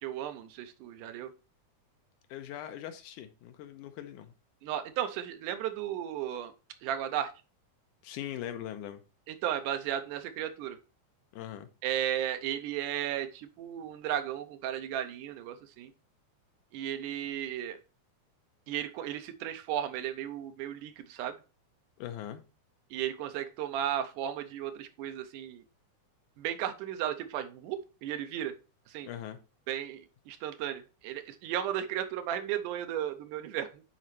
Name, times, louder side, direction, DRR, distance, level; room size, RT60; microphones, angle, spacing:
voice 1, 0.0-1.3 4.6-6.5 6.8-7.3 9.3-10.8 11.8-15.9 16.7-17.8 18.7-21.4 22.9-25.6 26.4-28.5 28.9-29.1 29.7-33.8, right 11 dB, 90° right, 2.2 m, -35 dB
voice 2, 2.3-4.3 8.0-9.0 11.3-11.7 22.0-22.4 29.0-29.4, left 11 dB, 85° left, 2.2 m, -41 dB
10.0 x 4.2 x 3.1 m
omnidirectional pair, 3.6 m